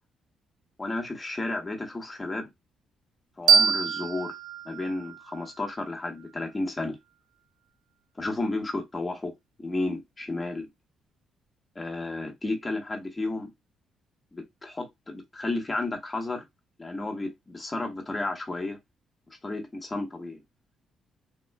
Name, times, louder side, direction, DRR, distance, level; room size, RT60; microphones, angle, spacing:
voice 1, 0.8-2.5 3.4-4.4 4.6-7.0 8.2-9.3 9.6-10.7 11.7-13.5 14.3-16.4 16.8-18.8 19.4-20.4, left 2 dB, 25° left, 1.2 m, -32 dB
sound 1, 3.5-6.3, right 6 dB, 70° right, 0.5 m, -25 dB
3.7 x 3.0 x 2.2 m
cardioid pair, 90°, 0 cm